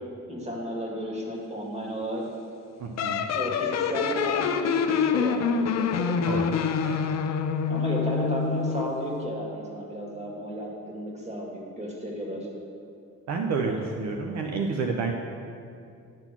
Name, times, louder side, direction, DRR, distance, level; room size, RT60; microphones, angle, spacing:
voice 1, 0.3-2.2 3.3-6.2 7.7-12.5 13.7-13.8, equal, 20° right, -2 dB, 2.0 m, -33 dB
voice 2, 2.8-3.2 6.2-6.5 6.8-7.0 13.3-15.1, right 4 dB, 65° right, 2 dB, 0.7 m, -29 dB
sound 1, 3.0-9.0, left 6 dB, 60° left, 0.5 m, -26 dB
10.5 x 4.0 x 6.0 m, 2.4 s
cardioid pair, 90°, 30 cm